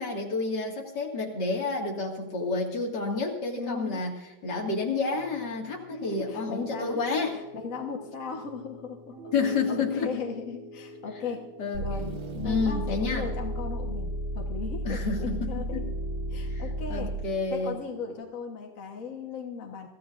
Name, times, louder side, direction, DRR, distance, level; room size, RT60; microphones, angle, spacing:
voice 1, 0.0-4.2 4.4-7.4 9.3-10.1 11.6-12.1 12.4-13.3 14.8-15.8 16.5-16.6 16.9-17.7, left 4 dB, 35° left, 0 dB, 2.3 m, -30 dB
voice 2, 3.6-4.0 5.9-7.0 7.3-11.5 11.8-15.8 16.3-17.2 17.5-19.9, left 5 dB, 55° left, 2 dB, 0.8 m, -37 dB
Piano, 5.1-18.2, equal, 25° right, 3.4 m, -44 dB
sound 1, 11.7-17.4, right 1 dB, 90° right, 4.1 m, -33 dB
24.0 x 14.5 x 2.6 m, 1.0 s
omnidirectional pair, 3.5 m